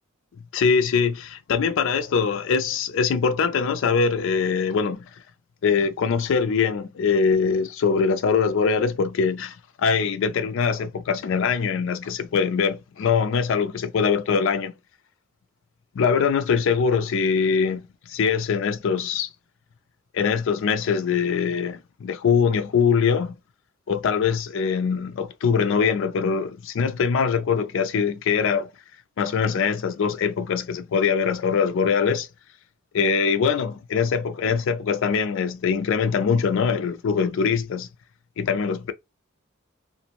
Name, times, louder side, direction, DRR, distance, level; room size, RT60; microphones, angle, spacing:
voice 1, 0.5-5.1 5.6-14.7 16.0-19.3 20.1-23.3 23.9-28.7 29.2-32.3 32.9-37.9 38.4-38.9, left 6 dB, 65° left, 0.4 m, -23 dB
2.5 x 2.1 x 2.8 m
head